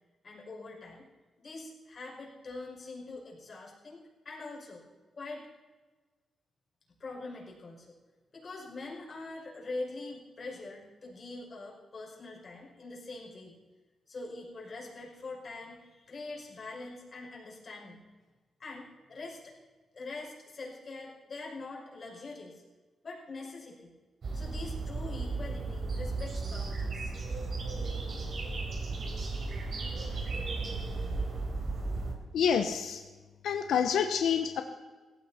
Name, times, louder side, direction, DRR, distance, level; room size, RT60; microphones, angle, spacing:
voice 1, 0.2-1.0 1.4-4.8 5.1-5.5 7.0-7.9 8.3-13.6 14.1-18.0 18.6-19.5 19.9-22.6 23.0-23.9 24.3-27.1, left 3 dB, 40° left, -3 dB, 5.7 m, -43 dB
sound 1, 24.2-32.1, right 3 dB, 55° right, 3.9 m, -35 dB
voice 2, 32.3-33.0 33.4-34.6, left 7 dB, 85° left, 7 dB, 0.9 m, -27 dB
18.0 x 15.5 x 4.3 m, 1.3 s
cardioid pair, 110°, 0 cm